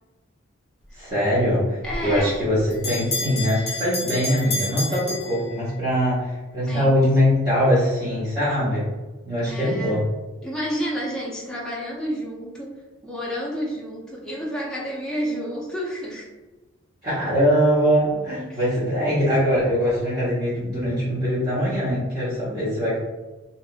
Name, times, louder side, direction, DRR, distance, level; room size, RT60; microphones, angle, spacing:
voice 1, 1.0-8.9 9.2-10.0 17.0-23.0, equal, 25° right, -13 dB, 0.9 m, -22 dB
voice 2, 1.8-2.4 6.6-7.0 9.5-10.0 10.4-16.3 18.5-18.6, equal, 5° left, -5 dB, 0.4 m, -30 dB
Bell, 1.9-6.0, left 2 dB, 30° left, 0.8 m, -30 dB
2.7 x 2.5 x 2.4 m, 1.2 s
head